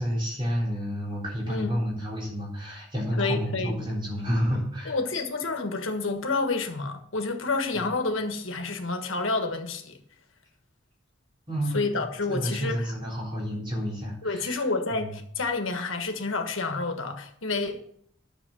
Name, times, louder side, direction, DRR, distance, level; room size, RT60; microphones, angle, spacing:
voice 1, 0.0-5.0 7.8-7.9 11.5-12.0 12.3-14.6 14.9-15.2, equal, 25° right, 4.0 m, -30 dB
voice 2, 3.2-3.8 4.8-10.0 11.7-12.9 14.2-18.0, left 3 dB, 85° left, 1.5 m, -29 dB
10.0 x 6.5 x 6.3 m
head